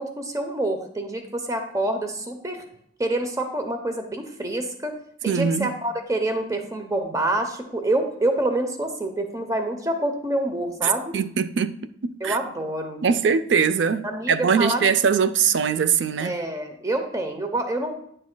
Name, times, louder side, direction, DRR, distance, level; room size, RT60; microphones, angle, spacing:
voice 1, 0.0-2.6 3.0-5.0 5.2-11.1 12.2-13.0 14.0-14.8 16.2-17.9, right 1 dB, 20° right, 0.7 m, -27 dB
voice 2, 5.3-5.7 10.8-11.7 12.0-12.4 13.0-16.3, right 6 dB, 90° right, 0.4 m, -22 dB
9.7 x 7.2 x 2.2 m
head